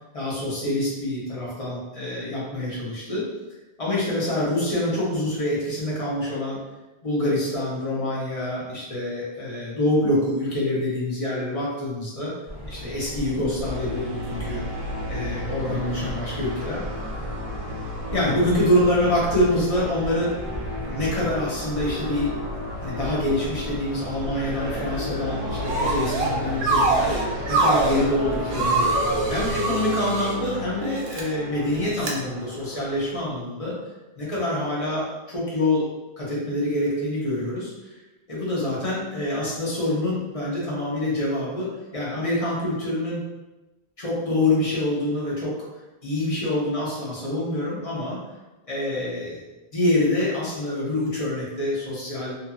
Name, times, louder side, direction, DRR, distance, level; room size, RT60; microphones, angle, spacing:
voice 1, 0.1-3.3 3.8-6.6 7.0-12.3 12.7-14.6 15.1-16.8 18.1-20.3 20.9-22.3 22.8-27.1 27.5-29.0 29.3-33.7 34.2-35.9 36.2-37.7 38.3-43.2 44.0-45.6 46.0-48.2 48.7-49.4 49.7-52.4, left 1 dB, 35° left, -7 dB, 0.9 m, -26 dB
sound 1, 12.5-29.6, equal, 10° right, 1.3 m, -34 dB
sound 2, 13.7-33.1, left 1 dB, 45° right, 0.5 m, -35 dB
sound 3, 25.7-26.3 26.6-28.0 28.5-30.3 31.0-31.2 32.0-32.1, right 3 dB, 80° right, 0.8 m, -23 dB
2.8 x 2.5 x 2.3 m, 1.1 s
omnidirectional pair, 1.0 m